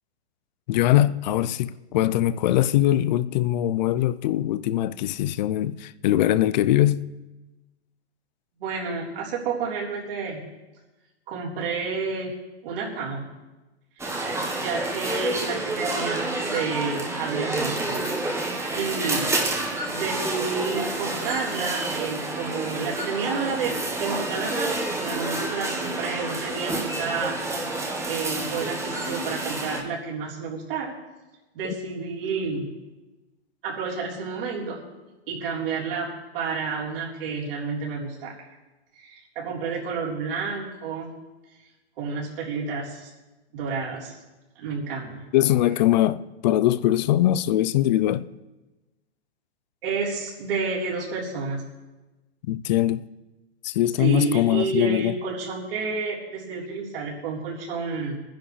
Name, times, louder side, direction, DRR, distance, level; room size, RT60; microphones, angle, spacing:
voice 1, 0.7-7.0 31.6-31.7 45.3-48.3 52.5-53.0 53.6-55.2, left 13 dB, 45° left, 0.5 m, -22 dB
voice 2, 8.6-10.5 11.3-12.4 12.6-13.3 14.0-14.1 14.6-18.3 18.7-19.5 19.9-27.4 28.0-30.9 31.5-32.7 33.6-34.8 35.3-36.1 36.3-38.5 39.0-41.1 42.0-43.1 43.5-44.2 44.6-45.2 49.8-51.6 54.0-58.1, right 5 dB, 55° right, 4.0 m, -30 dB
sound 1, 14.0-29.8, right 2 dB, 10° right, 1.2 m, -29 dB
23.0 x 10.0 x 3.3 m
hypercardioid pair, 145°, 33 cm